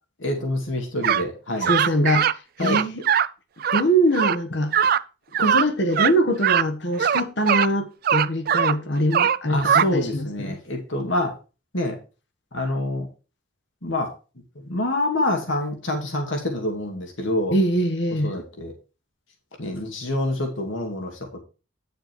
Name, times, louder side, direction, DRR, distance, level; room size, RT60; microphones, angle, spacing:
voice 1, 0.2-1.7 2.6-2.8 9.5-11.3 11.7-12.0 12.5-13.1 13.8-14.1 14.6-17.5 18.2-18.7 19.6-21.1, left 1 dB, 80° left, 2.4 m, -26 dB
sound 1, 1.0-1.2 1.6-2.3 2.6-3.3 3.6-3.8 4.1-4.3 4.7-5.0 5.3-5.7 5.9-6.1 6.4-6.7 7.0-7.7 8.0-8.7 9.1-9.9, right 8 dB, 50° right, 0.4 m, -20 dB
voice 2, 1.7-2.3 2.6-3.0 3.7-4.7 5.4-10.6 17.5-18.4, equal, 65° left, 1.4 m, -23 dB
9.6 x 6.8 x 4.7 m
head